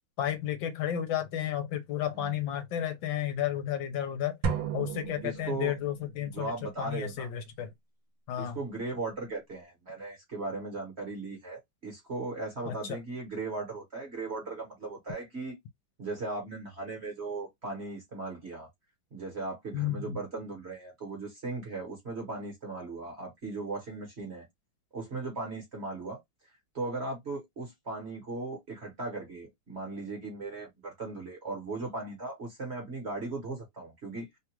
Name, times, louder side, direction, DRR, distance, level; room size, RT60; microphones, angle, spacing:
voice 1, 0.2-4.4 4.7-6.5 6.8-7.7 8.3-8.6 12.7-13.0 19.7-20.2, left 10 dB, 75° left, 1.4 m, -32 dB
sound 1, 4.4-6.1, right 6 dB, 80° right, 1.4 m, -34 dB
voice 2, 5.2-5.7 6.2-7.3 8.4-15.6 16.0-18.7 19.1-24.4 24.9-26.2 26.7-34.3, right 3 dB, 40° right, 1.2 m, -37 dB
3.3 x 2.4 x 2.9 m
omnidirectional pair, 2.2 m